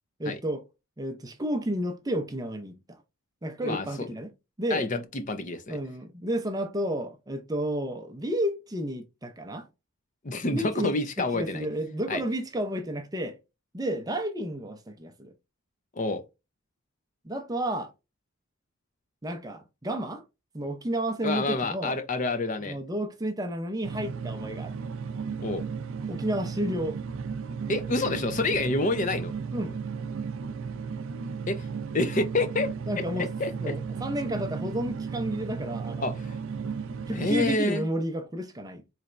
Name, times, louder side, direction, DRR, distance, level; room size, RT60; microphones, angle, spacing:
voice 1, 0.2-0.6 1.0-3.0 3.4-4.3 4.6-4.9 5.7-9.7 10.5-13.4 13.7-15.3 17.2-17.9 19.2-20.2 20.5-22.0 22.6-24.8 26.1-27.0 29.5-29.8 32.9-33.3 33.6-36.1 37.1-38.8, right 1 dB, 15° right, 0.5 m, -31 dB
voice 2, 3.6-4.1 4.7-5.8 10.2-11.7 12.1-12.2 15.9-16.2 21.2-22.8 25.4-25.6 27.7-29.3 31.5-31.7 31.9-32.7 33.2-33.7 36.0-36.4 37.1-37.8, left 2 dB, 35° left, 0.5 m, -28 dB
sound 1, 23.8-37.6, right 5 dB, 65° right, 0.4 m, -35 dB
4.1 x 3.1 x 2.5 m
head